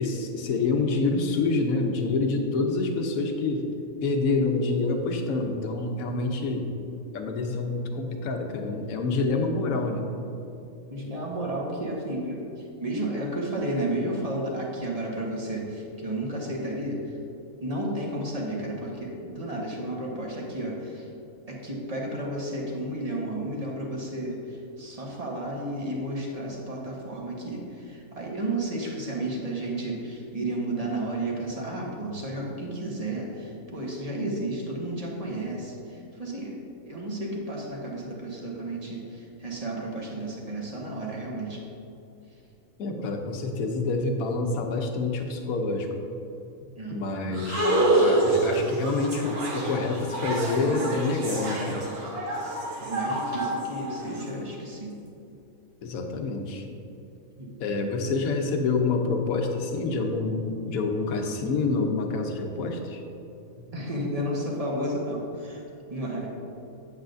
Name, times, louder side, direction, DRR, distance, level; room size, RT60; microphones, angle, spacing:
voice 1, 0.0-3.7 4.0-6.7 7.1-10.1 42.8-45.9 46.9-51.8 55.8-56.7 57.6-63.0, left 3 dB, 75° left, 4 dB, 1.2 m, -27 dB
voice 2, 10.9-17.2 17.6-21.1 21.5-36.6 36.8-41.6 46.8-47.0 52.8-54.9 57.4-57.9 63.7-65.6 65.9-66.3, right 1 dB, 30° right, -2 dB, 1.1 m, -32 dB
sound 1, 47.3-54.2, right 2 dB, 90° right, 1.7 m, -27 dB
8.9 x 8.1 x 2.6 m, 2.8 s
omnidirectional pair, 1.5 m